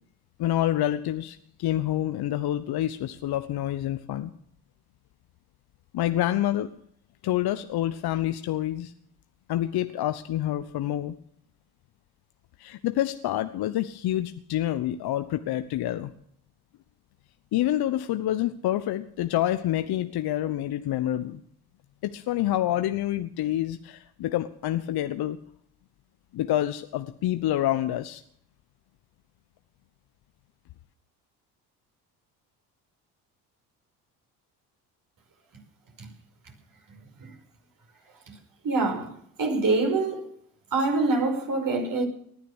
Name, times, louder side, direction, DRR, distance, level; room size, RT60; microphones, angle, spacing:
voice 1, 0.4-4.3 5.9-6.7 7.2-8.9 9.5-11.1 12.6-16.1 17.5-21.4 22.0-25.4 26.3-28.2, left 13 dB, 55° left, 1.1 m, -27 dB
voice 2, 38.6-39.1 39.4-40.2 40.7-42.0, right 3 dB, 45° right, 5.4 m, -25 dB
19.5 x 11.0 x 6.3 m
hypercardioid pair, 60°, 45 cm